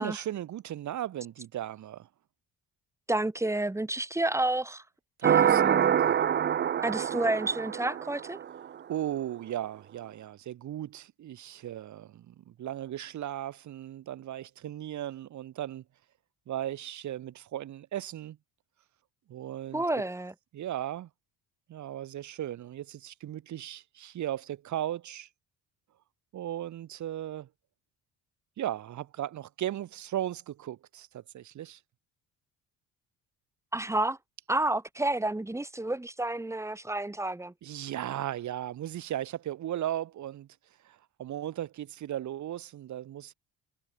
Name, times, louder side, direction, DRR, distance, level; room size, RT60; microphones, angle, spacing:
voice 1, 0.0-2.1 5.2-6.2 8.9-15.8 16.5-18.4 19.3-19.8 20.5-21.1 21.7-25.3 26.3-27.5 28.6-31.8 37.6-40.5 40.8-43.3, right 12 dB, 55° right, 4.4 m, -36 dB
voice 2, 3.1-4.8 5.2-5.9 6.8-8.4 19.7-20.3 33.7-34.2 34.5-37.5, right 2 dB, 10° right, 6.4 m, -30 dB
sound 1, 5.2-8.7, right 9 dB, 30° right, 0.8 m, -25 dB
cardioid pair, 160°, 35 cm